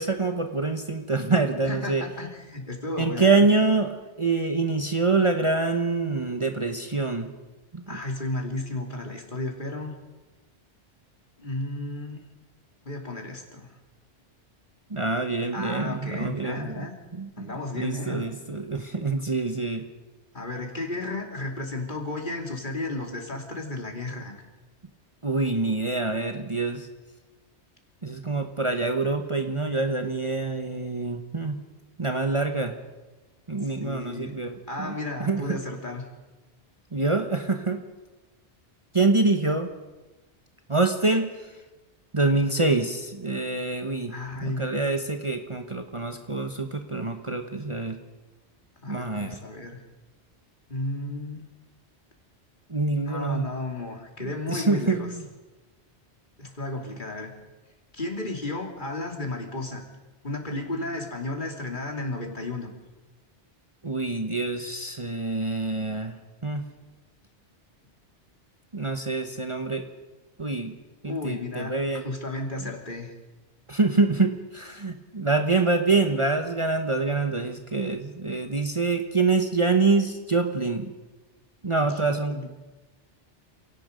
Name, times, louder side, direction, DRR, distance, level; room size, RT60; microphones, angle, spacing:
voice 1, 0.0-2.0 3.0-7.3 7.7-8.0 14.9-16.8 17.1-17.5 17.7-19.8 25.2-26.9 28.0-31.6 32.0-32.7 33.5-34.9 35.2-35.6 36.9-37.8 38.9-39.7 40.7-41.5 42.1-44.1 44.4-48.0 48.9-49.4 52.7-53.5 54.2-55.2 63.8-66.1 66.4-66.6 68.7-69.8 70.4-70.7 71.0-72.1 73.7-80.9 81.6-82.5, right 3 dB, 30° right, 5 dB, 1.3 m, -25 dB
voice 2, 1.6-3.5 7.9-9.9 11.4-12.2 12.8-13.7 15.5-16.9 17.4-18.3 20.3-24.4 33.6-34.3 34.7-36.1 44.1-44.7 48.8-49.8 50.7-51.5 53.0-55.1 56.4-57.3 57.9-59.8 60.2-62.7 71.0-73.1 82.0-82.5, left 2 dB, 45° left, 1 dB, 3.1 m, -33 dB
28.5 x 17.5 x 5.3 m, 1.2 s
omnidirectional pair, 1.2 m